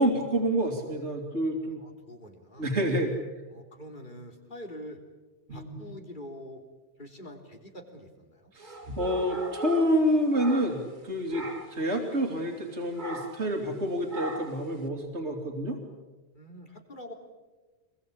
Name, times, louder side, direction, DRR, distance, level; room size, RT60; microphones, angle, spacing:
voice 1, 0.0-1.8 2.6-3.1 5.5-5.9 8.5-11.4 11.7-15.8, equal, 85° right, 2 dB, 3.1 m, -28 dB
voice 2, 1.8-2.7 3.5-5.0 5.5-6.6 7.0-8.5 11.4-11.6 16.3-17.1, equal, 45° left, 3 dB, 3.7 m, -45 dB
sound 1, 8.6-11.0 11.3-11.8 13.0-13.5 14.1-14.7, right 1 dB, 45° right, 2.5 m, -39 dB
26.0 x 22.0 x 8.6 m, 1.2 s
omnidirectional pair, 1.1 m